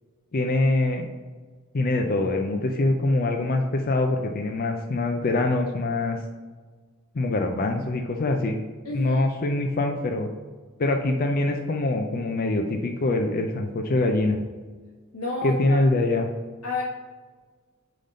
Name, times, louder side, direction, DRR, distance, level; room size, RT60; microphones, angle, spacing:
voice 1, 0.3-1.1 1.7-6.2 7.1-8.6 8.9-10.3 10.8-14.4 15.4-16.3, left 2 dB, 40° left, 3 dB, 0.5 m, -24 dB
voice 2, 8.8-9.2 15.1-15.8 16.6-16.8, left 2 dB, 90° left, -5 dB, 1.2 m, -30 dB
5.1 x 3.9 x 5.4 m, 1.4 s
head